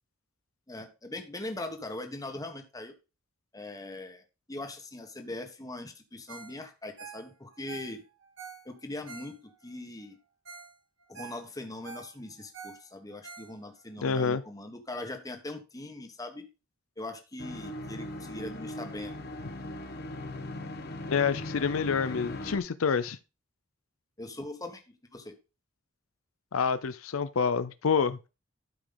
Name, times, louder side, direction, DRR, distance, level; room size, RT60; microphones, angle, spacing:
voice 1, 0.7-2.9 3.5-4.2 4.5-8.0 8.6-10.2 11.1-16.5 17.0-19.2 24.2-25.3, left 2 dB, 15° left, 1.3 m, -41 dB
Ringtone, 6.3-6.6 6.8-9.7 10.2-10.3 10.5-10.7 11.0-13.9 14.3-14.4, right 5 dB, 65° right, 2.1 m, -47 dB
voice 2, 14.0-14.4 21.1-23.2 26.5-28.2, left 6 dB, 90° left, 0.6 m, -27 dB
sound 1, 17.4-22.6, left 1 dB, 50° left, 1.2 m, -39 dB
12.5 x 5.0 x 3.9 m
head